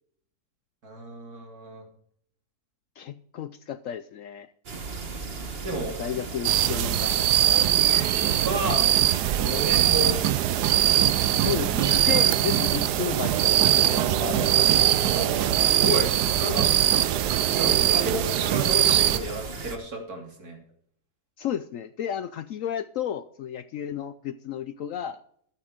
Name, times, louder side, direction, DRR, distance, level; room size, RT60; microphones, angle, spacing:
voice 1, 0.8-1.8 5.6-6.0 8.4-8.9 9.4-10.2 15.1-15.3 15.6-16.1 16.4-16.7 17.2-20.6, right 1 dB, 65° right, 1 dB, 3.4 m, -31 dB
voice 2, 3.0-4.5 5.7-8.1 11.3-14.8 21.4-25.2, left 9 dB, 65° left, 13 dB, 0.8 m, -33 dB
sound 1, 4.7-19.8, right 4 dB, 40° right, 1.4 m, -36 dB
sound 2, 6.4-19.2, right 12 dB, 85° right, 1.2 m, -22 dB
13.0 x 8.7 x 5.0 m, 0.65 s
omnidirectional pair, 1.7 m